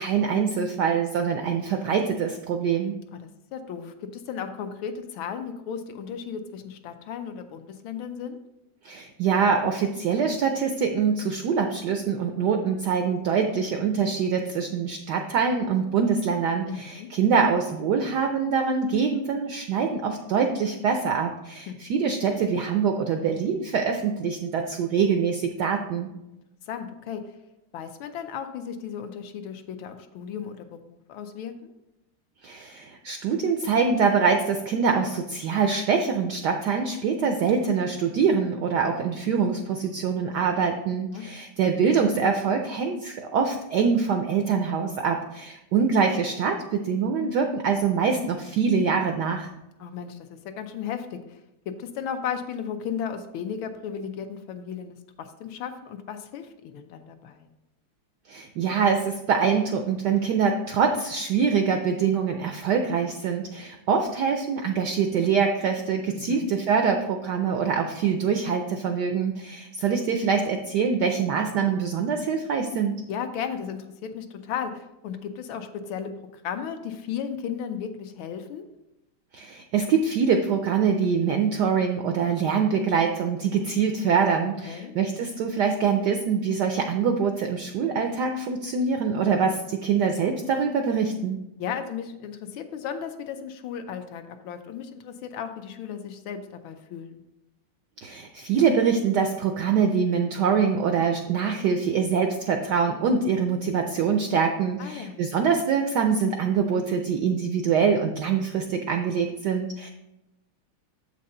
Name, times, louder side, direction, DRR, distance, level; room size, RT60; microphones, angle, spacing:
voice 1, 0.0-3.0 8.8-26.1 32.4-49.5 58.3-72.9 79.3-91.4 98.0-109.9, right 6 dB, 80° right, 5 dB, 0.9 m, -24 dB
voice 2, 3.1-8.4 16.7-17.1 21.7-21.8 26.7-27.4 27.7-31.7 41.1-41.3 49.8-51.4 51.7-57.5 66.1-66.5 73.1-78.6 84.6-85.0 91.6-97.2 104.8-105.2, left 7 dB, 75° left, 8 dB, 1.3 m, -35 dB
7.5 x 5.4 x 3.8 m, 0.92 s
omnidirectional pair, 2.4 m